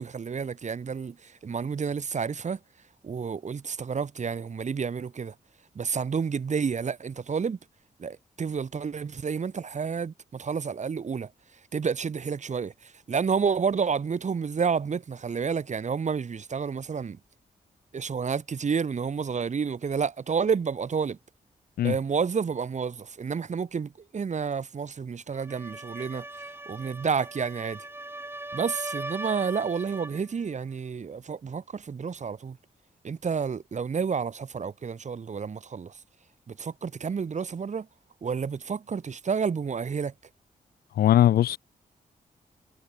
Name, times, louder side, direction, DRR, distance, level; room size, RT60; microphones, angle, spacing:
voice 1, 0.0-2.6 3.0-5.3 5.7-7.6 8.0-11.3 11.7-12.7 13.1-17.2 17.9-21.2 21.8-26.2 26.7-27.8 28.5-32.6 33.0-35.9 36.5-37.9 38.2-40.1, right 6 dB, 50° right, 1.4 m, -30 dB
sound 1, 25.3-30.2, right 1 dB, 15° right, 3.0 m, -39 dB
voice 2, 41.0-41.6, left 12 dB, 85° left, 0.5 m, -20 dB
cardioid pair, 65°, 15 cm